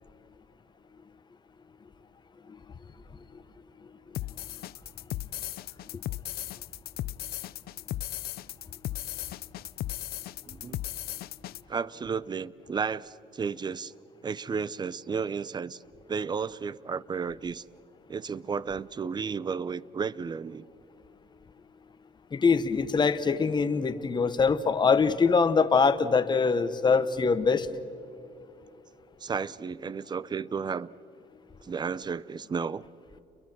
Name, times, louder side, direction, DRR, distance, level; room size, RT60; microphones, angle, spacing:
sound 1, 4.1-11.6, left 14 dB, 65° left, 0.5 m, -36 dB
voice 1, 10.5-10.8 11.7-13.9 14.2-15.8 16.1-17.6 18.1-20.6 29.2-30.9 31.6-32.9, right 5 dB, 25° right, 20 dB, 0.6 m, -33 dB
voice 2, 22.3-27.7, left 5 dB, 25° left, 10 dB, 1.2 m, -23 dB
29.5 x 22.5 x 6.1 m, 2.8 s
cardioid pair, 110°, 17 cm